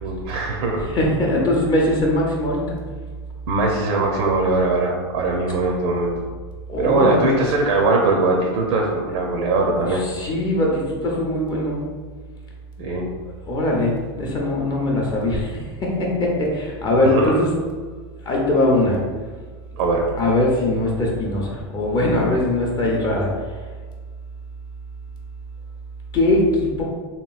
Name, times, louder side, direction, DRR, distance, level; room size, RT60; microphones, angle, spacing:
voice 1, 0.0-0.9 3.5-6.2 6.8-10.0 12.8-13.1 17.0-17.3 19.8-20.1, right 3 dB, 65° right, 0 dB, 0.5 m, -21 dB
voice 2, 0.8-2.8 6.7-7.3 9.9-11.8 13.3-17.5 18.3-19.0 20.1-23.3 26.1-26.8, left 1 dB, 30° left, -2 dB, 0.6 m, -21 dB
2.9 x 2.7 x 2.3 m, 1.5 s
hypercardioid pair, 110°, 14 cm